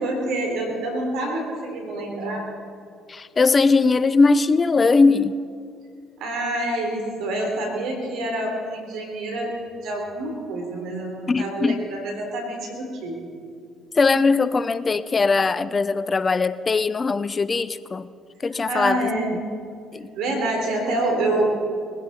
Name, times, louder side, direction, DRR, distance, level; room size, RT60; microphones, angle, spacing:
voice 1, 0.0-2.4 6.2-13.2 18.7-19.5 20.1-21.4, right 1 dB, 70° right, 2 dB, 3.7 m, -27 dB
voice 2, 3.1-5.4 11.3-11.9 13.9-18.1 18.4-19.0 19.9-20.1, left 4 dB, 35° left, 16 dB, 0.6 m, -20 dB
21.0 x 16.0 x 4.3 m, 2.3 s
hypercardioid pair, 55°, 0 cm